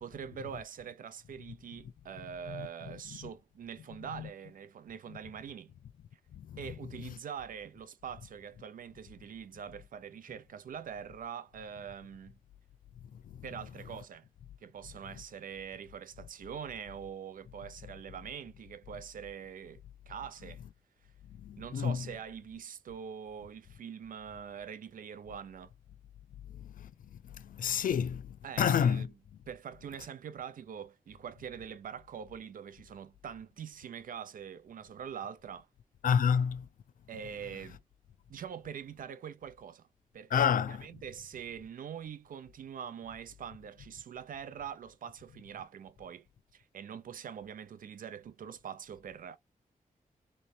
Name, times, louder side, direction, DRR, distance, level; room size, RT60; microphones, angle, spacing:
voice 1, 0.0-5.7 6.6-12.4 13.4-14.2 14.6-19.8 20.1-20.6 21.6-25.7 28.4-29.1 29.5-35.7 37.1-37.8 38.3-39.9 40.1-46.3 46.5-49.4, right 8 dB, 75° right, 0.6 m, -44 dB
voice 2, 21.4-22.0 26.8-26.9 27.4-29.1 36.0-36.7 40.3-40.8, left 7 dB, 75° left, 0.5 m, -29 dB
3.2 x 3.1 x 4.1 m
wide cardioid pair, 135°, 14 cm